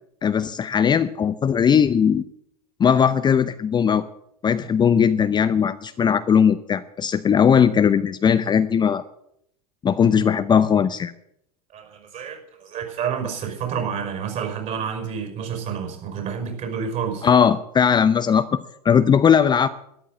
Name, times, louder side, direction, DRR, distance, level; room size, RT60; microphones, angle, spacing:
voice 1, 0.2-2.2 2.8-4.0 4.4-9.0 9.8-11.1 17.2-18.6 18.8-19.7, left 7 dB, 20° left, 11 dB, 0.7 m, -18 dB
voice 2, 11.7-17.3, right 7 dB, 40° right, 5 dB, 5.7 m, -29 dB
13.0 x 11.0 x 7.6 m, 0.73 s
figure-of-eight pair, 80°, 20 cm